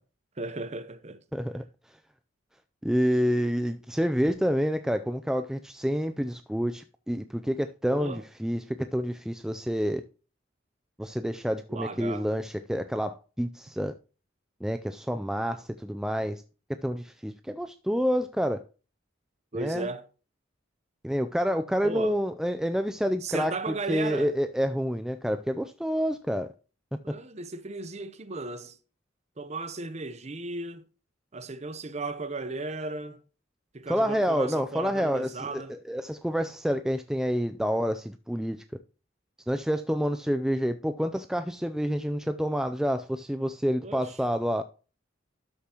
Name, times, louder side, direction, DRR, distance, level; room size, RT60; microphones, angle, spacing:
voice 1, 0.4-1.2 7.9-8.2 11.7-12.3 19.5-20.1 21.8-22.2 23.2-24.3 27.0-28.8 29.4-30.8 31.3-33.2 33.7-35.7 43.8-44.2, right 3 dB, 35° right, 0.7 m, -35 dB
voice 2, 1.3-1.6 2.8-10.0 11.0-13.9 14.6-16.4 16.8-18.6 19.5-19.9 21.0-26.5 33.9-38.6 39.5-44.6, equal, 5° right, 0.3 m, -28 dB
12.5 x 6.9 x 2.9 m
head